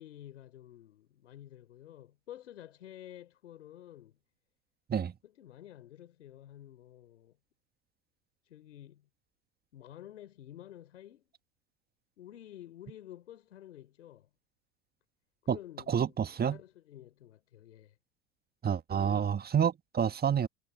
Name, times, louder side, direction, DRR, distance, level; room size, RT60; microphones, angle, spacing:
voice 1, 0.0-4.2 5.2-7.4 8.4-9.1 9.7-11.3 12.2-14.3 15.4-18.0 18.9-19.4, left 12 dB, 80° left, 3.8 m, -51 dB
voice 2, 15.9-16.6 18.6-20.5, right 8 dB, 25° right, 1.7 m, -28 dB
hypercardioid pair, 80°, 36 cm